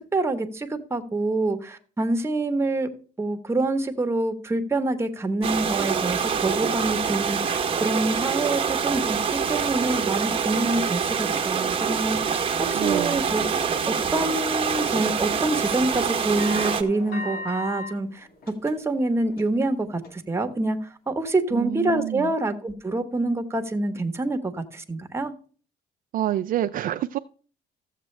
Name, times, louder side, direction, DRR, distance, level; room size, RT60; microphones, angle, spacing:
voice 1, 0.1-2.9 3.2-13.4 13.9-25.3, right 2 dB, 15° right, 6 dB, 1.2 m, -26 dB
sound 1, 5.4-16.8, right 6 dB, 30° right, 1.0 m, -25 dB
voice 2, 12.7-13.2 21.5-22.3 26.1-27.2, right 12 dB, 55° right, 10 dB, 0.4 m, -27 dB
sound 2, 16.4-17.9 18.3-18.9 19.3-19.6 20.0-20.1, left 2 dB, 65° left, 1.9 m, -35 dB
14.0 x 7.5 x 3.3 m, 0.42 s
cardioid pair, 110°, 17 cm